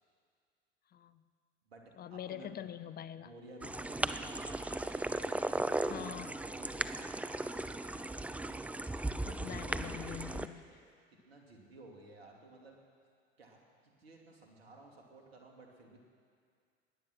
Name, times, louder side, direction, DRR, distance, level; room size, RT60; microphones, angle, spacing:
voice 1, 0.9-1.3 2.0-3.3 5.9-6.3 9.3-10.7, left 10 dB, 30° left, 13 dB, 0.7 m, -44 dB
voice 2, 1.7-2.6 3.2-7.1 10.6-10.8 11.3-12.8 13.4-16.0, right 2 dB, 80° right, 1 dB, 2.6 m, -55 dB
sound 1, 3.6-10.5, right 2 dB, 5° right, 0.4 m, -37 dB
21.0 x 9.7 x 6.1 m, 2.2 s
hypercardioid pair, 80°, 31 cm